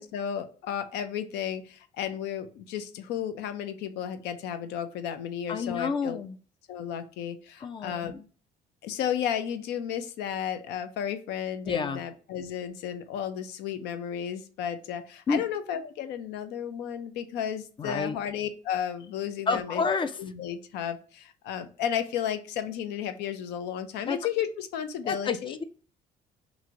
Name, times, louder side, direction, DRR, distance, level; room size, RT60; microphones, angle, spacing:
voice 1, 0.0-6.2 6.7-8.1 8.8-19.8 20.2-25.6, left 9 dB, 85° left, 10 dB, 0.5 m, -33 dB
voice 2, 5.5-6.4 7.6-8.2 11.7-12.0 15.3-15.4 17.8-18.2 19.5-20.1 24.0-24.2 25.0-25.6, left 5 dB, 30° left, 11 dB, 0.3 m, -29 dB
3.0 x 2.5 x 3.6 m, 0.39 s
cardioid pair, 110°, 17 cm